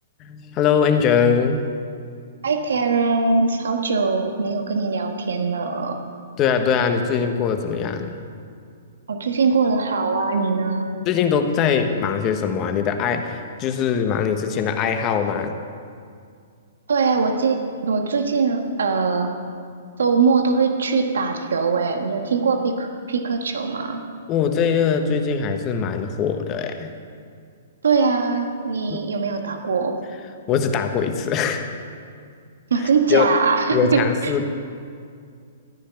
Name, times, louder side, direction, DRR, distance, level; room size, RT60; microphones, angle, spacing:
voice 1, 0.2-1.6 6.4-8.2 11.0-15.5 24.3-27.0 28.9-29.0 30.5-31.7 33.1-33.3 33.7-34.5, left 7 dB, 30° left, 6 dB, 1.2 m, -21 dB
voice 2, 2.4-6.0 9.1-11.1 16.9-19.4 20.0-24.0 27.8-30.0 32.7-34.3, right 4 dB, 85° right, 5 dB, 1.5 m, -21 dB
13.5 x 10.0 x 5.8 m, 2.3 s
hypercardioid pair, 145°, 0 cm